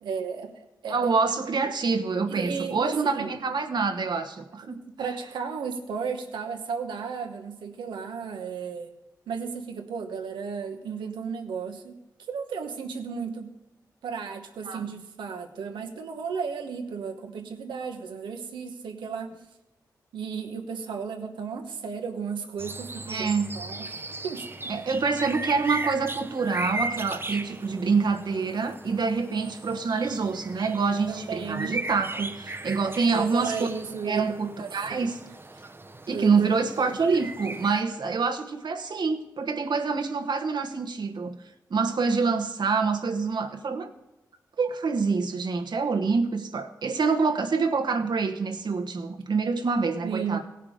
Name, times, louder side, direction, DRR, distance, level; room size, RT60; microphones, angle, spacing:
voice 1, 0.0-1.1 1.4-1.7 2.3-3.3 4.7-8.9 9.3-11.9 12.3-13.5 14.0-19.3 20.1-24.7 31.1-31.8 33.0-35.0 36.1-36.5 36.8-37.0 50.0-50.4, right 6 dB, 90° right, 4 dB, 1.1 m, -34 dB
voice 2, 0.9-4.8 14.7-14.8 23.1-23.5 24.7-33.5 34.1-35.2 36.1-41.4 41.7-43.9 44.6-50.4, right 4 dB, 65° right, 5 dB, 1.2 m, -26 dB
sound 1, 22.6-37.8, right 2 dB, 30° right, 0.8 m, -37 dB
17.0 x 5.7 x 5.0 m, 0.94 s
supercardioid pair, 40°, 8 cm